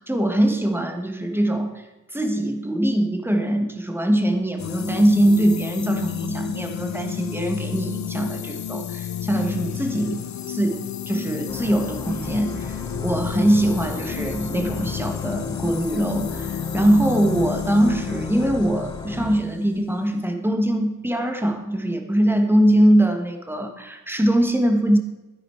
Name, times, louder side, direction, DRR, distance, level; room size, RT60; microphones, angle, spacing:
voice 1, 0.1-1.8 2.1-10.2 10.5-10.8 11.1-12.8 13.0-25.0, right 1 dB, 5° right, 5 dB, 1.4 m, -22 dB
sound 1, 4.6-20.3, left 9 dB, 65° left, 0.6 m, -31 dB
sound 2, 11.5-19.4, left 2 dB, 15° left, 0.9 m, -35 dB
13.0 x 10.0 x 4.5 m, 1.1 s
wide cardioid pair, 135°, 31 cm